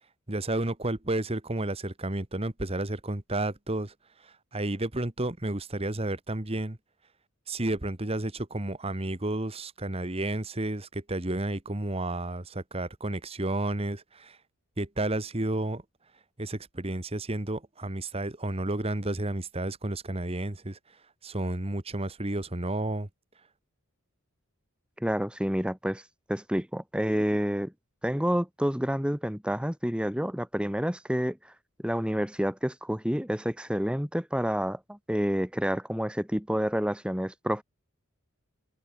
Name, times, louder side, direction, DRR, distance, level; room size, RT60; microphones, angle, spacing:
voice 1, 0.3-3.9 4.2-6.8 7.5-14.4 14.8-15.8 16.4-20.8 21.2-23.1, right 1 dB, 25° right, 1.4 m, -31 dB
voice 2, 25.0-26.0 26.3-27.7 28.0-31.5 31.8-37.6, equal, 5° right, 1.7 m, -29 dB
head